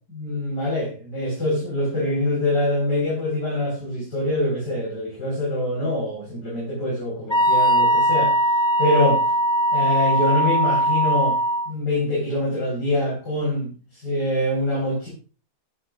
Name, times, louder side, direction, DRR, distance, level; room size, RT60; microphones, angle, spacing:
voice 1, 0.1-8.4 8.8-9.2 9.7-11.4 11.7-15.1, left 1 dB, 80° left, -5 dB, 5.8 m, -24 dB
Wind instrument woodwind instrument, 7.3-11.7, right 1 dB, 5° left, 0.3 m, -20 dB
12.5 x 11.0 x 2.6 m, 0.34 s
omnidirectional pair, 1.8 m